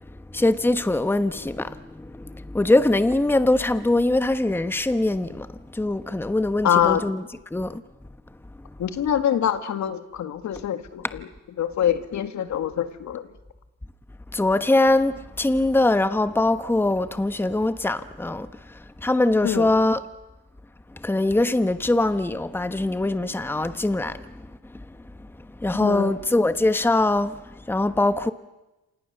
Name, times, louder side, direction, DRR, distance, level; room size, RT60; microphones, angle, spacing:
voice 1, 0.3-7.2 7.5-7.8 14.3-20.0 21.0-24.3 25.6-27.4 27.7-28.3, left 2 dB, 5° left, 1.1 m, -22 dB
voice 2, 6.6-7.0 8.8-11.3 11.6-13.3 19.4-19.7 25.8-26.1, left 9 dB, 65° left, 1.9 m, -24 dB
28.0 x 26.5 x 6.8 m
cardioid pair, 90°, 30 cm